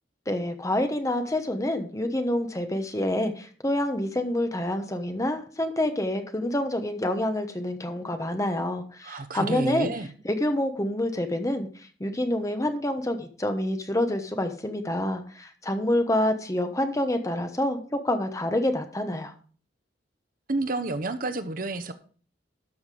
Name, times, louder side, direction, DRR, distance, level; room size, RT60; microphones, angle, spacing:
voice 1, 0.3-9.9 10.2-11.7 12.0-19.3, left 1 dB, 20° left, 1.0 m, -27 dB
voice 2, 9.0-10.1 20.5-21.9, right 2 dB, 50° right, 0.8 m, -30 dB
12.5 x 5.8 x 4.9 m
head